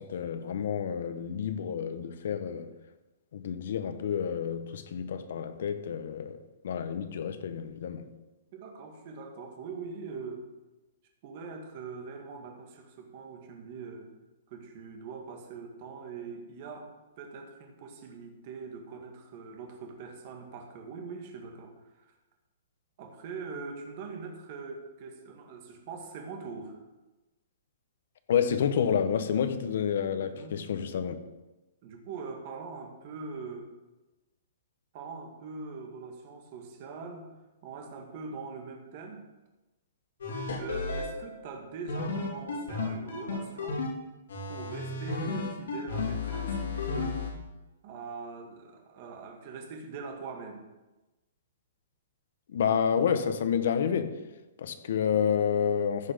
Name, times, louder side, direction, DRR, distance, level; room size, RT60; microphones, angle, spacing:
voice 1, 0.0-2.7 3.3-6.4 6.6-8.1 28.3-31.1 52.5-54.2 54.6-56.1, left 7 dB, 50° left, 10 dB, 1.0 m, -29 dB
voice 2, 8.5-10.4 11.2-14.1 14.5-22.1 23.0-26.8 30.2-30.6 31.8-33.7 34.9-37.3 37.6-39.2 40.6-43.8 44.5-47.2 47.8-50.6, right 4 dB, 30° right, 3 dB, 1.7 m, -42 dB
sound 1, 40.2-41.1 41.9-43.9 44.3-47.3, left 3 dB, 80° left, 3.5 m, -33 dB
15.0 x 5.9 x 5.1 m, 1.1 s
hypercardioid pair, 180°, 0 cm